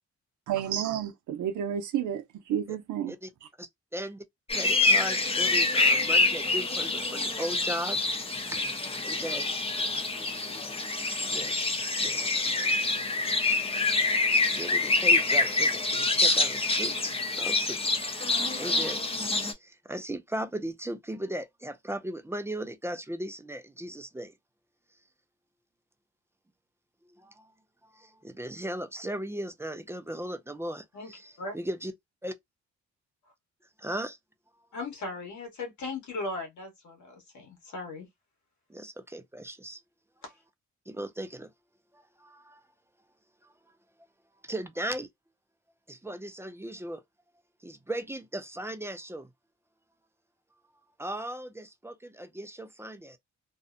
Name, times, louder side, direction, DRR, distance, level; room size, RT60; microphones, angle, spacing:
voice 1, 0.5-2.2 2.5-3.1, right 9 dB, 85° right, 0.6 m, -30 dB
voice 2, 3.6-4.2 4.6-8.0 8.8-9.5 11.2-12.5 14.5-18.3 18.6-19.0 19.5-24.3 27.1-27.5 27.8-31.9 32.2-32.4 33.8-34.2 38.7-39.8 40.9-41.5 41.9-42.6 43.4-43.5 44.4-45.1 45.9-47.0 47.6-49.3 51.0-53.2, right 1 dB, 10° right, 0.3 m, -37 dB
sound 1, 4.5-19.5, left 3 dB, 20° left, 0.7 m, -26 dB
voice 3, 34.7-38.1 40.2-40.3, left 2 dB, 75° left, 1.3 m, -37 dB
2.6 x 2.1 x 2.4 m
cardioid pair, 100°, 29 cm